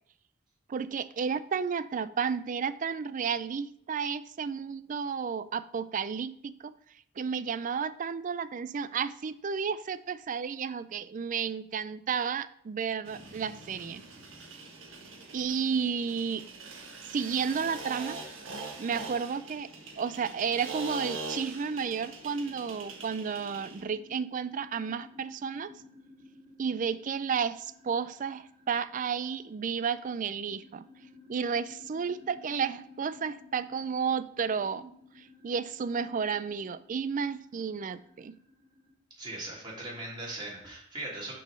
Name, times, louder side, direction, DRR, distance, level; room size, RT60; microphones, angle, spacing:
voice 1, 0.7-6.7 7.2-14.0 15.3-16.4 17.1-18.2 18.8-19.7 20.0-25.7 26.6-30.8 31.3-38.3, right 6 dB, 40° right, 15 dB, 0.4 m, -32 dB
sound 1, 13.0-23.8, right 3 dB, 70° right, 1.6 m, -43 dB
sound 2, 22.8-38.9, left 3 dB, 10° left, 3.0 m, -55 dB
voice 2, 39.2-41.4, right 2 dB, 25° right, -5 dB, 2.8 m, -39 dB
6.2 x 4.7 x 6.3 m, 0.70 s
head